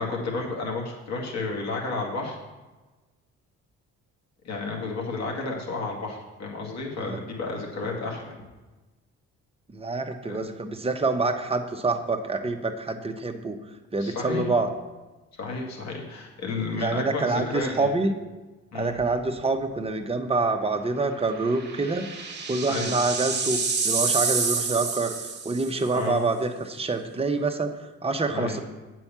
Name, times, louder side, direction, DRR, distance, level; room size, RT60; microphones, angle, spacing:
voice 1, 0.0-2.4 4.4-8.3 10.3-10.4 14.0-14.5 15.4-17.9 18.7-19.0 22.7-22.9 25.9-26.2 28.3-28.6, left 3 dB, 60° left, -1 dB, 2.2 m, -31 dB
voice 2, 9.7-13.6 13.9-14.7 16.8-18.1 18.7-22.1 22.5-25.1 25.4-28.6, right 3 dB, 20° right, 5 dB, 0.9 m, -26 dB
sound 1, 19.1-19.3 19.7-19.8 21.2-25.9, right 5 dB, 35° right, 1.4 m, -28 dB
8.6 x 4.6 x 7.3 m, 1.2 s
cardioid pair, 90°, 30 cm